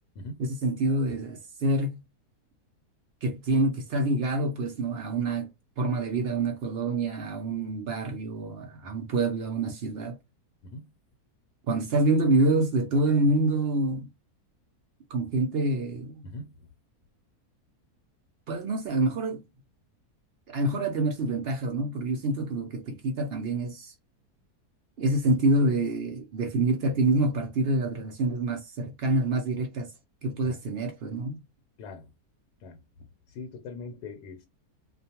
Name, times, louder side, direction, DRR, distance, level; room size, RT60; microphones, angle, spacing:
voice 1, 0.4-2.0 3.2-5.5 5.8-10.1 11.7-14.1 15.1-16.2 18.5-19.4 20.5-23.9 25.0-29.9 30.2-31.4, right 2 dB, 65° right, 0.6 m, -26 dB
voice 2, 16.2-16.6 30.4-30.6 31.8-32.1 32.6-32.8 33.3-34.5, left 3 dB, 80° left, 1.1 m, -41 dB
2.5 x 2.2 x 2.8 m
omnidirectional pair, 1.7 m